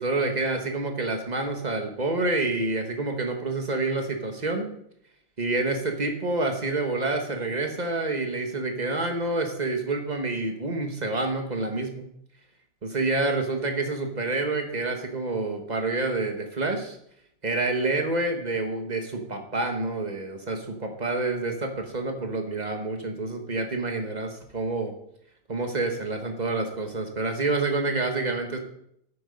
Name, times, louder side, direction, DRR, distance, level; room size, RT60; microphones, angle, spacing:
voice 1, 0.0-4.7 5.4-12.0 12.8-17.0 17.4-24.9 25.5-28.6, right 2 dB, 25° right, 3 dB, 1.3 m, -28 dB
9.1 x 8.7 x 5.4 m, 0.72 s
omnidirectional pair, 2.4 m